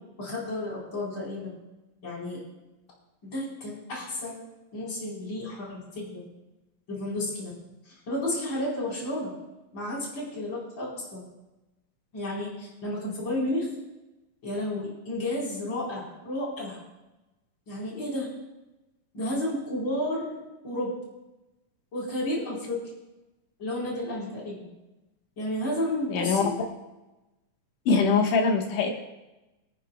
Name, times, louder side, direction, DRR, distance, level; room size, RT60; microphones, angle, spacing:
voice 1, 0.2-1.6 2.0-2.4 3.2-4.4 4.7-6.3 6.9-7.5 8.1-9.3 9.7-11.2 12.1-13.7 14.4-16.8 17.7-18.3 19.1-20.9 21.9-22.8 23.6-24.6 25.4-26.5, left 1 dB, 35° left, -5 dB, 4.5 m, -32 dB
voice 2, 26.1-26.4 27.9-28.9, left 4 dB, 70° left, 2 dB, 2.7 m, -22 dB
25.0 x 9.8 x 2.2 m, 1.0 s
omnidirectional pair, 3.9 m